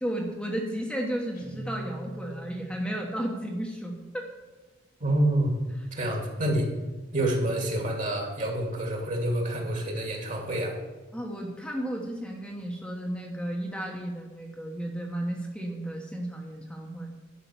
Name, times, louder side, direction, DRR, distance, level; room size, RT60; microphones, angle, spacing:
voice 1, 0.0-4.3 11.1-17.2, right 1 dB, 5° left, -1 dB, 1.2 m, -33 dB
Guitar, 1.3-3.0, right 1 dB, 50° left, 1.9 m, -41 dB
voice 2, 5.0-5.6 5.9-6.7 7.1-10.8, right 1 dB, 45° right, 0 dB, 2.4 m, -27 dB
11.0 x 5.7 x 7.0 m, 1.2 s
head